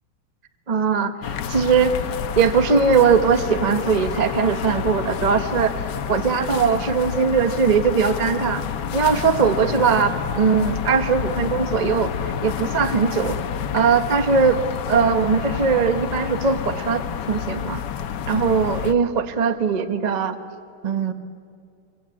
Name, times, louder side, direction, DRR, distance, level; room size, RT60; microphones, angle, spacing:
voice 1, 0.7-1.9 2.3-5.7 6.1-8.6 8.9-12.1 12.4-13.4 13.7-14.6 14.9-17.0 17.3-17.8 18.3-20.4 20.8-21.1, right 5 dB, 30° right, 8 dB, 0.8 m, -20 dB
sound 1, 1.2-18.9, left 8 dB, 60° left, 1.3 m, -29 dB
26.5 x 24.0 x 8.6 m, 2.3 s
omnidirectional pair, 2.4 m